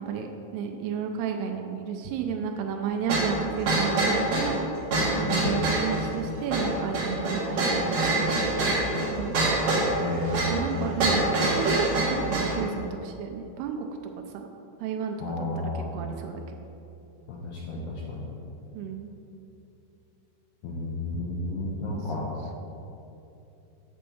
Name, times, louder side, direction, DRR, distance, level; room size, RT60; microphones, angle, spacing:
voice 1, 0.0-4.6 5.2-8.8 9.1-9.4 10.4-13.9 14.3-14.5 14.8-15.2 15.8-16.6 18.7-19.1 21.9-22.0, right 7 dB, 85° right, 3 dB, 2.3 m, -32 dB
sound 1, 3.1-12.6, right 2 dB, 55° right, 1.6 m, -25 dB
voice 2, 9.9-10.9 15.2-16.1 17.3-18.3 20.6-22.3, left 2 dB, 75° left, -4 dB, 2.5 m, -32 dB
8.3 x 4.3 x 7.0 m, 2.8 s
omnidirectional pair, 5.4 m